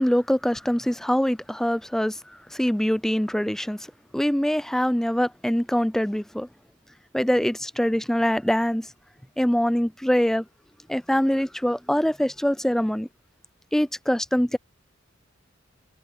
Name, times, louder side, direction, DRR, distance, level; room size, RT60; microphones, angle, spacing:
voice 1, 0.0-2.2 2.5-3.9 4.1-6.5 7.1-8.9 9.4-10.4 10.9-13.1 13.7-14.6, equal, ahead, 0.3 m, -23 dB
head